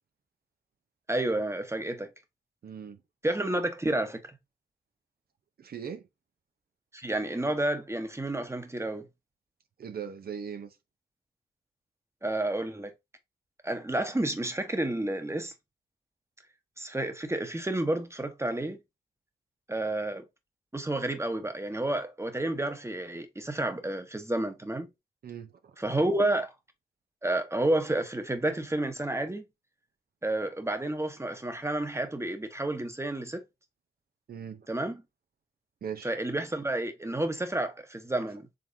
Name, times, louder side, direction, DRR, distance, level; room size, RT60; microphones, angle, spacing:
voice 1, 1.1-2.1 3.2-4.4 6.9-9.0 12.2-12.9 13.6-15.5 16.8-18.8 19.7-20.2 20.7-24.9 25.8-26.5 27.2-29.4 30.2-33.4 34.7-35.0 36.0-38.5, right 1 dB, 15° right, 1.1 m, -30 dB
voice 2, 2.6-3.0 5.6-6.1 9.8-10.7 25.2-25.8 34.3-34.7 35.8-36.1, right 7 dB, 65° right, 0.8 m, -39 dB
5.2 x 3.5 x 2.7 m
supercardioid pair, 45°, 17 cm